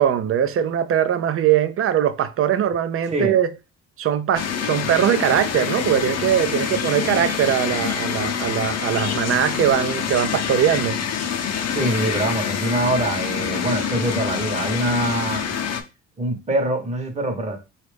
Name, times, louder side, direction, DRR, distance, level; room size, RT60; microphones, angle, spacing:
voice 1, 0.0-3.5 4.0-11.0, right 9 dB, 45° right, 0.5 m, -21 dB
voice 2, 3.0-3.3 11.7-15.5 16.2-17.6, right 1 dB, 25° right, 0.9 m, -24 dB
sound 1, 4.3-15.8, left 7 dB, 55° left, 0.7 m, -26 dB
4.0 x 2.4 x 3.3 m
cardioid pair, 90°, 30 cm